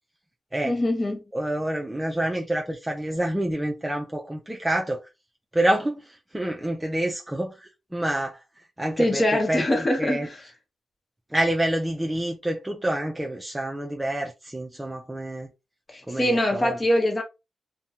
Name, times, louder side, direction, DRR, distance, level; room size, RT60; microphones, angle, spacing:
voice 1, 0.6-1.2 9.0-10.4 15.9-17.2, left 1 dB, 35° left, 0.9 m, -23 dB
voice 2, 1.3-5.0 5.5-9.7 10.0-10.3 11.3-15.5 16.1-16.8, right 1 dB, 15° right, 0.5 m, -27 dB
2.5 x 2.2 x 2.8 m
cardioid pair, 60°, 0 cm